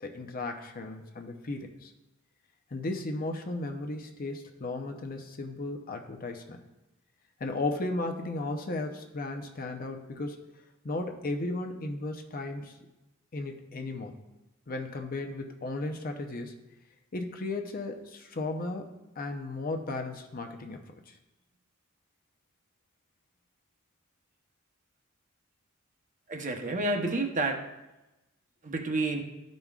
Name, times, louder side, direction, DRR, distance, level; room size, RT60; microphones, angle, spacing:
voice 1, 0.0-1.9 2.7-6.6 7.4-10.5 10.8-12.8 13.3-14.2 14.7-16.5 17.1-21.2, left 2 dB, 45° left, 4 dB, 0.7 m, -35 dB
voice 2, 26.3-27.6 28.6-29.2, right 2 dB, 40° right, 3 dB, 0.9 m, -29 dB
12.5 x 5.2 x 2.4 m, 1.0 s
head